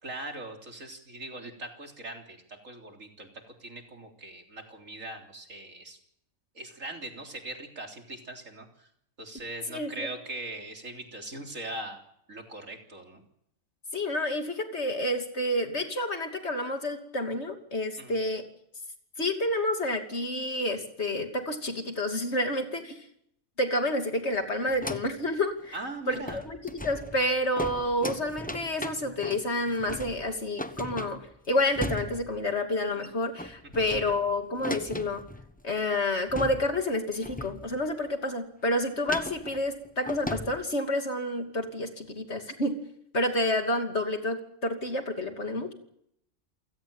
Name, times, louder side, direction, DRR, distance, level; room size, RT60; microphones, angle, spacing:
voice 1, 0.0-3.3 3.6-6.0 6.5-8.9 9.2-12.0 12.3-13.2 18.0-18.2 25.7-26.4 33.7-33.9, right 2 dB, 75° right, 3 dB, 4.0 m, -40 dB
voice 2, 13.9-18.4 19.2-23.0 23.6-25.8 26.1-31.2 31.5-35.2 35.6-42.8 43.1-45.7, left 1 dB, 55° left, 5 dB, 2.9 m, -29 dB
sound 1, 24.6-25.3 25.6-25.8 26.1-32.5 32.8-33.1 33.4-35.6 36.0-36.1 36.3-36.9 37.2-37.9 39.1-40.6, left 1 dB, 5° left, 0.9 m, -38 dB
29.0 x 16.5 x 9.0 m, 0.74 s
omnidirectional pair, 1.4 m